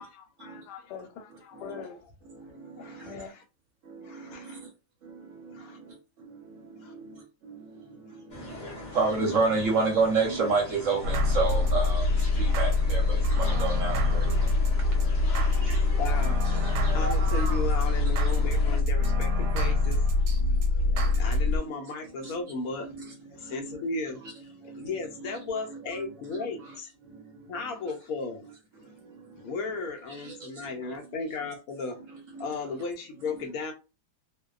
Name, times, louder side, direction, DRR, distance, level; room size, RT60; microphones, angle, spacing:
voice 1, 0.0-2.0 2.8-3.3, left 7 dB, 90° left, 1.2 m, -43 dB
voice 2, 1.3-1.8 2.3-3.2 3.9-4.5 5.0-5.9 6.3-14.3 14.9-15.0 15.6-15.8 16.4-16.6 17.3-17.9 20.4-21.1 21.6-21.8 22.2-23.9 24.1-26.8 27.1-27.9 28.4-28.5 29.0-31.0 31.4-31.5 32.0-32.8 33.2-33.4, right 4 dB, 65° right, 0.9 m, -33 dB
voice 3, 2.8-3.4 4.0-4.6 5.5-5.8 6.8-6.9 16.0-20.4 20.9-22.9 23.4-24.2 24.8-26.9 27.5-28.4 29.4-32.0 32.4-33.7, left 4 dB, 70° left, 0.9 m, -35 dB
sound 1, 8.3-18.8, left 2 dB, 50° left, 0.5 m, -41 dB
sound 2, 11.0-21.6, left 2 dB, 90° right, 1.2 m, -24 dB
2.6 x 2.1 x 2.3 m
omnidirectional pair, 1.7 m